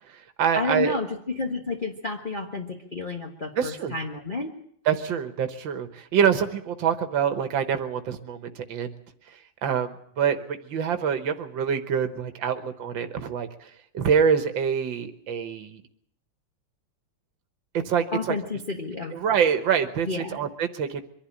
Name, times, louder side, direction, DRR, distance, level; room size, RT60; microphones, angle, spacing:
voice 1, 0.0-1.0 3.6-3.9 4.9-9.0 9.3-15.8 17.7-18.4 19.1-21.0, right 7 dB, 90° right, 8 dB, 2.0 m, -26 dB
voice 2, 0.5-4.5 18.1-19.1 20.1-20.4, left 3 dB, 30° left, 1 dB, 1.4 m, -30 dB
24.0 x 11.5 x 10.0 m, 0.69 s
omnidirectional pair, 2.0 m